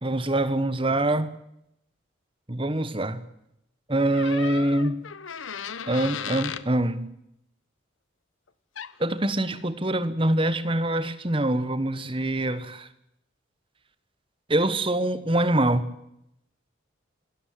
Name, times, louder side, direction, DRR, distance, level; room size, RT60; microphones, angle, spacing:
voice 1, 0.0-1.4 2.5-3.2 3.9-5.0 5.9-7.1 9.0-12.9 14.5-15.9, right 1 dB, 25° right, 1.4 m, -24 dB
sound 1, 4.1-6.7 8.8-9.0, left 7 dB, 85° left, 1.1 m, -35 dB
26.5 x 13.5 x 9.4 m
head